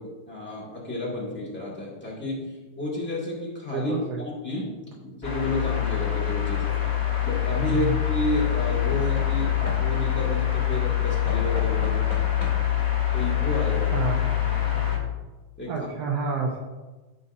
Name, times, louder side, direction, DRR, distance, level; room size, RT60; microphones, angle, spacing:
voice 1, 0.0-4.7 5.0-6.6 7.2-12.0 13.1-14.1 14.7-15.1 15.6-15.9, left 1 dB, 5° left, -6 dB, 1.2 m, -31 dB
voice 2, 3.7-4.3 7.7-7.9 13.9-14.2 15.7-16.6, right 5 dB, 70° right, -2 dB, 1.6 m, -28 dB
sound 1, 5.2-15.0, left 11 dB, 85° left, 0.5 m, -25 dB
Knock / Wood, 6.7-7.0 8.7-10.2 11.3-12.8 13.9-14.0 14.2-14.3, left 1 dB, 25° left, 0.9 m, -38 dB
14.0 x 5.5 x 2.6 m, 1.2 s
omnidirectional pair, 3.9 m